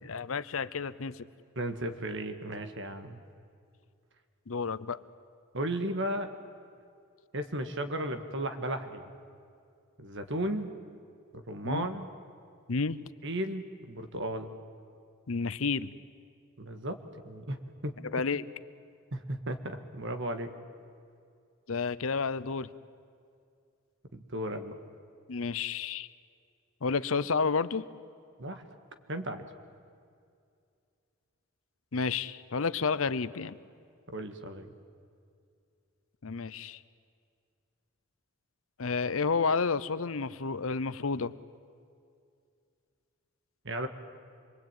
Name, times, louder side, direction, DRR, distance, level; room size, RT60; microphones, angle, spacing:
voice 1, 0.0-1.2 4.5-5.0 11.6-11.9 12.7-13.0 15.3-15.9 18.1-18.4 21.7-22.7 25.3-26.1 26.8-27.8 31.9-33.6 36.2-36.8 38.8-41.3, left 5 dB, 70° left, 16 dB, 0.7 m, -30 dB
voice 2, 1.6-3.2 5.5-6.3 7.3-9.1 10.0-10.7 11.3-12.1 13.2-14.5 16.6-17.6 17.8-17.9 19.1-20.5 24.1-24.7 28.4-28.6 29.1-29.4 34.1-34.7 43.6-43.9, right 1 dB, 55° right, 7 dB, 1.8 m, -35 dB
26.0 x 22.0 x 9.2 m, 2.4 s
head